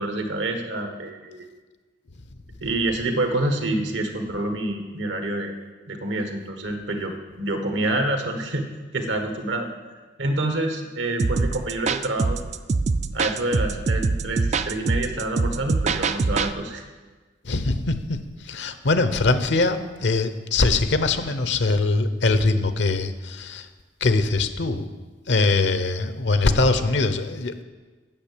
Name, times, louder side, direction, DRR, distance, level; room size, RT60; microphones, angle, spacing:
voice 1, 0.0-1.5 2.6-5.5 5.9-8.7 8.9-9.7 10.2-12.4 13.1-16.8, right 2 dB, 80° right, 5 dB, 1.4 m, -27 dB
sound 1, 11.2-16.5, right 4 dB, 35° right, 0.3 m, -24 dB
voice 2, 17.4-23.7 24.0-24.9 25.3-27.6, left 3 dB, 75° left, 10 dB, 0.8 m, -22 dB
8.8 x 6.6 x 8.4 m, 1.3 s
head